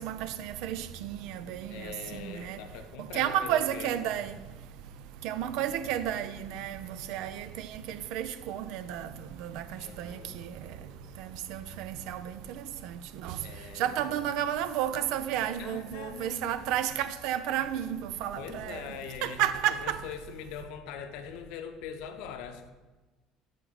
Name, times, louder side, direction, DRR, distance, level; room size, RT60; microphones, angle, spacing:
voice 1, 0.0-2.6 3.1-4.4 5.2-9.1 9.4-10.5 11.2-13.4 13.8-18.8 19.2-20.0, right 11 dB, 70° right, 0.4 m, -32 dB
voice 2, 1.7-4.2 9.8-10.4 13.4-14.2 15.6-16.6 18.4-22.7, left 7 dB, 75° left, 0.6 m, -42 dB
7.4 x 5.2 x 4.0 m
cardioid pair, 135°, 0 cm